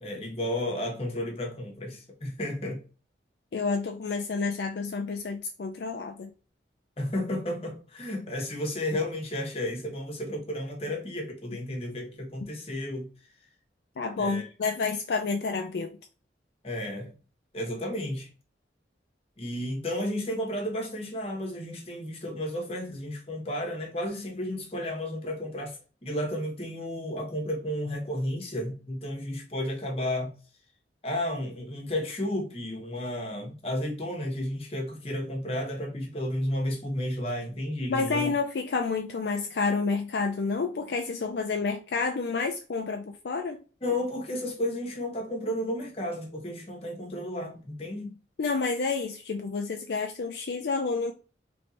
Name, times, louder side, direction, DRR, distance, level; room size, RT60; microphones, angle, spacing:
voice 1, 0.0-2.8 7.0-13.1 14.2-14.5 16.6-17.1 17.5-18.3 19.4-30.3 31.0-38.3 43.8-48.1, left 1 dB, 35° left, 1.1 m, -32 dB
voice 2, 3.5-6.3 14.0-15.9 37.9-43.6 48.4-51.1, left 4 dB, 70° left, 0.4 m, -29 dB
3.2 x 2.6 x 4.2 m
head